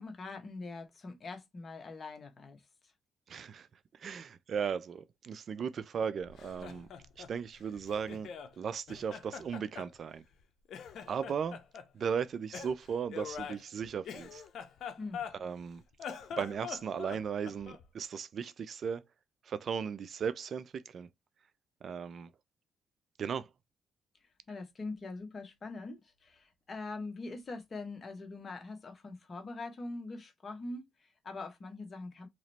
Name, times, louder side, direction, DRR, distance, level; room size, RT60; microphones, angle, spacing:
voice 1, 0.0-2.6 15.0-15.2 24.5-32.3, left 3 dB, 40° left, 1.0 m, -43 dB
voice 2, 3.3-3.7 3.9-6.9 7.2-8.3 8.6-10.2 11.1-11.6 11.9-14.4 15.4-15.8 16.4-19.0 19.4-21.1 21.8-22.3 23.2-23.5, right 7 dB, 55° right, 0.4 m, -36 dB
Laughter, 6.2-8.5 8.9-10.4 10.7-11.9 12.5-15.6 15.9-17.9, left 7 dB, 70° left, 0.7 m, -44 dB
3.1 x 2.9 x 4.1 m
cardioid pair, 90°, 0 cm